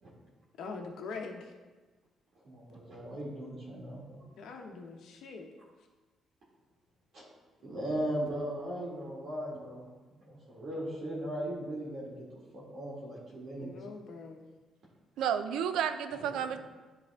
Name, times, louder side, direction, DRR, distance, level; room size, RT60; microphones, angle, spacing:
voice 1, 0.6-1.5 4.4-5.5 13.6-14.5, left 4 dB, 75° left, 2 dB, 0.8 m, -43 dB
voice 2, 2.4-4.2 7.1-7.2 7.6-12.2 12.5-13.7 16.3-16.4, right 1 dB, 65° right, -6 dB, 1.8 m, -38 dB
voice 3, 15.2-16.6, right 8 dB, 85° right, 10 dB, 0.4 m, -31 dB
9.8 x 3.4 x 3.5 m, 1.3 s
cardioid pair, 90°, 0 cm